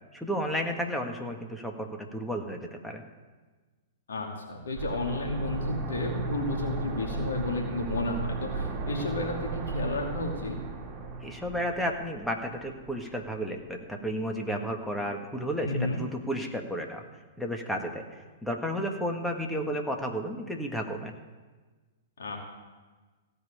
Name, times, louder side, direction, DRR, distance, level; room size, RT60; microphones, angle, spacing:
voice 1, 0.1-3.0 11.2-17.0 17.4-18.1 18.4-21.1, equal, 5° left, 2 dB, 1.7 m, -32 dB
voice 2, 4.1-10.6 15.6-16.0 22.2-22.4, left 2 dB, 75° left, 0 dB, 2.6 m, -32 dB
sound 1, 4.8-13.5 13.8-13.9, right 3 dB, 25° right, 2.4 m, -36 dB
16.0 x 5.5 x 8.7 m, 1.3 s
figure-of-eight pair, 110°, 0 cm